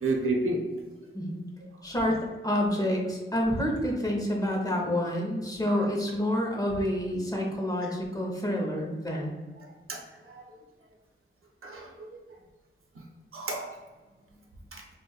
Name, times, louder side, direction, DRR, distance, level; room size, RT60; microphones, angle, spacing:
voice 1, 0.0-0.6 5.7-5.9 9.9-10.4 11.6-12.1 12.9-13.0 13.3-13.8 14.7-14.8, right 2 dB, 85° right, 0 dB, 0.7 m, -31 dB
voice 2, 1.8-2.2 2.4-9.4, equal, 15° left, -1 dB, 0.9 m, -28 dB
4.9 x 2.5 x 2.3 m, 1.3 s
wide cardioid pair, 85°, 21 cm